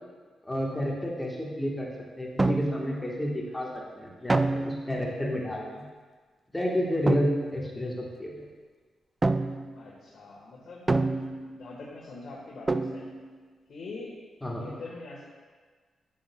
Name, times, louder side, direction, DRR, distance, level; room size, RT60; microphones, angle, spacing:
voice 1, 0.4-5.8 6.5-8.3 14.4-14.7, left 1 dB, 10° left, -2 dB, 1.2 m, -30 dB
sound 1, 2.4-3.0 4.3-5.0 7.1-7.6 9.2-9.8 10.9-11.6 12.7-13.3, right 3 dB, 25° right, 0.3 m, -27 dB
voice 2, 9.7-10.8 11.1-13.1 13.7-14.1 14.6-15.2, left 3 dB, 65° left, -5 dB, 1.3 m, -43 dB
8.6 x 8.6 x 2.2 m, 1.5 s
cardioid pair, 80°, 0 cm